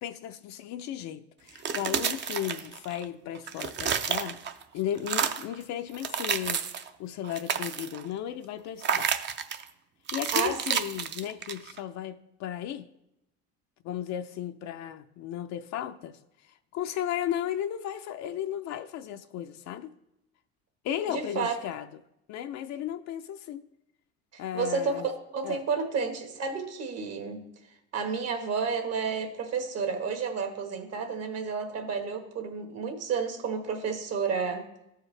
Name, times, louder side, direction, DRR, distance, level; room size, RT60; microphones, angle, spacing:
voice 1, 0.0-4.4 4.7-6.6 7.0-9.1 10.1-12.9 13.8-16.2 16.7-19.9 20.8-21.9 22.3-23.7 24.4-25.1 25.4-25.6, left 11 dB, 70° left, 0.5 m, -35 dB
sound 1, 1.5-3.0 3.3-4.6 5.0-5.5 5.9-6.9 7.2-8.0 8.8-9.6 10.1-11.8, right 7 dB, 40° right, 0.6 m, -30 dB
voice 2, 21.1-21.5 24.5-27.4 27.9-34.7, right 5 dB, 55° right, 1.5 m, -31 dB
14.0 x 4.7 x 3.3 m
cardioid pair, 110°, 29 cm